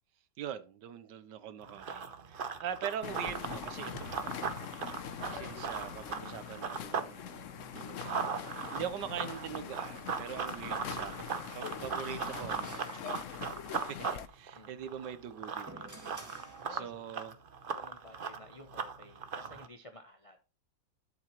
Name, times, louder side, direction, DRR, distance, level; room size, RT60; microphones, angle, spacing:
voice 1, 0.4-3.9 4.2-4.5 5.3-13.2 13.8-16.1 16.7-17.3, right 9 dB, 80° right, 1.4 m, -43 dB
Run, 1.6-7.1 7.5-19.7, right 6 dB, 45° right, 0.7 m, -39 dB
sound 1, 3.0-14.3, left 9 dB, 60° left, 0.9 m, -43 dB
sound 2, 12.0-13.8 15.1-17.2, right 1 dB, 10° right, 1.8 m, -53 dB
voice 2, 17.7-20.4, left 1 dB, 35° left, 0.5 m, -53 dB
12.0 x 7.8 x 3.0 m
omnidirectional pair, 1.9 m